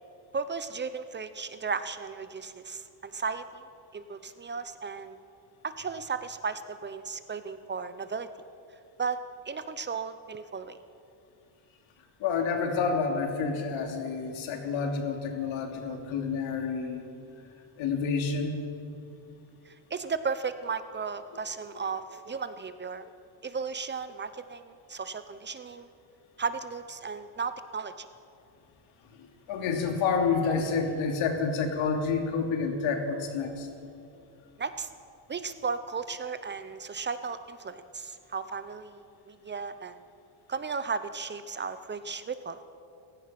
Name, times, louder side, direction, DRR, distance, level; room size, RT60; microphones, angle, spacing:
voice 1, 0.3-3.6 3.9-5.2 5.6-8.3 9.0-9.2 9.5-10.8 15.9-16.0 19.7-23.1 23.4-25.9 26.4-28.1 34.6-34.9 35.3-40.0 40.5-42.6, right 5 dB, 25° right, 11 dB, 0.6 m, -35 dB
voice 2, 12.2-17.1 17.8-18.5 29.1-33.7, left 5 dB, 80° left, 3 dB, 3.2 m, -29 dB
28.5 x 16.0 x 5.9 m, 2.5 s
cardioid pair, 160°, 46 cm